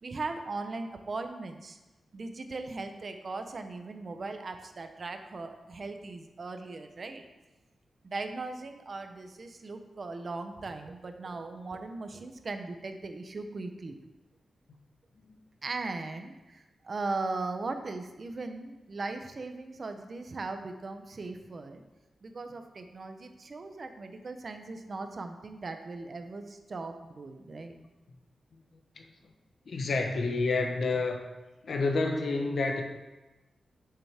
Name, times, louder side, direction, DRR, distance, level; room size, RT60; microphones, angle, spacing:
voice 1, 0.0-1.8 2.1-7.2 8.0-14.0 15.6-21.8 22.2-27.8, right 3 dB, 45° right, 7 dB, 0.8 m, -38 dB
voice 2, 29.7-31.2 31.6-32.8, left 3 dB, 65° left, 3 dB, 1.1 m, -28 dB
9.1 x 6.7 x 3.6 m, 1.1 s
wide cardioid pair, 125°, 0 cm